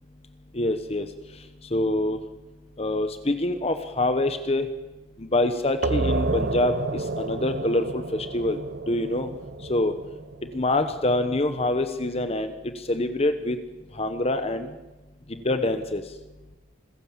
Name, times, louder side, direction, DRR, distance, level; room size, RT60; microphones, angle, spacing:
voice 1, 0.5-1.1 1.7-2.2 2.8-4.7 5.2-8.6 8.9-9.3 9.7-9.9 10.5-13.6 13.9-14.7 15.4-16.0, left 2 dB, 30° left, 9 dB, 1.0 m, -25 dB
sound 1, 5.8-11.2, right 2 dB, 50° right, 0.9 m, -30 dB
26.5 x 16.0 x 7.4 m, 1.1 s
head